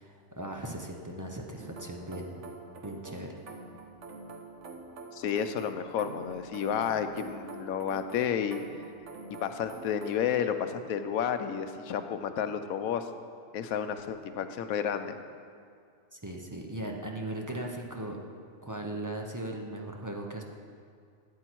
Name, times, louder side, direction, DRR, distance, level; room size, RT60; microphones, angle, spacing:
voice 1, 0.0-2.4 2.8-3.4 16.1-18.2 18.6-20.4, right 1 dB, 20° right, 1 dB, 0.6 m, -38 dB
sound 1, 1.6-10.3, right 3 dB, 60° right, 1.2 m, -46 dB
voice 2, 5.1-8.6 9.4-13.1 13.5-15.2, left 8 dB, 90° left, 9 dB, 1.1 m, -31 dB
13.0 x 8.2 x 4.6 m, 2.3 s
omnidirectional pair, 1.4 m